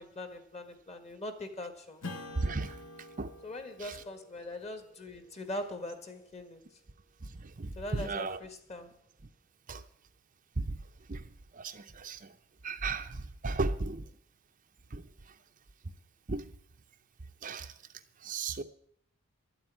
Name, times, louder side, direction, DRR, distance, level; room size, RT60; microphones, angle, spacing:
voice 1, 0.0-2.0 3.4-6.6 7.7-8.9, left 1 dB, 30° left, 1.7 m, -41 dB
Strum, 2.0-6.9, left 2 dB, 75° left, 2.0 m, -49 dB
voice 2, 2.4-2.8 3.2-3.3 3.8-4.0 7.4-8.4 9.7-9.8 10.6-10.7 11.1-11.2 11.5-12.3 12.6-14.0 14.9-15.0 16.3-16.5 17.4-17.7 18.2-18.6, right 3 dB, 35° right, 0.6 m, -35 dB
12.0 x 8.0 x 9.6 m
head